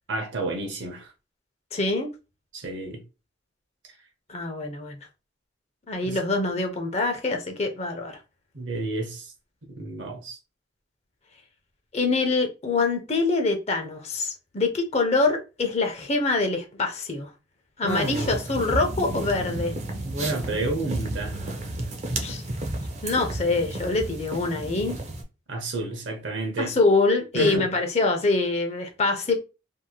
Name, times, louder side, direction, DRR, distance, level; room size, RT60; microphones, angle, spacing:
voice 1, 0.1-1.1 2.5-3.0 6.1-6.2 8.5-9.3 9.7-10.4 17.8-18.8 20.0-21.4 25.5-26.7 27.3-27.7, right 2 dB, 75° right, 0.7 m, -30 dB
voice 2, 1.7-2.1 4.3-5.0 5.9-8.2 11.9-17.3 17.8-19.7 22.2-22.4 23.0-25.0 26.6-29.3, left 3 dB, 35° left, 0.6 m, -25 dB
sound 1, 17.9-25.2, right 1 dB, 35° right, 0.5 m, -32 dB
2.9 x 2.7 x 2.3 m
head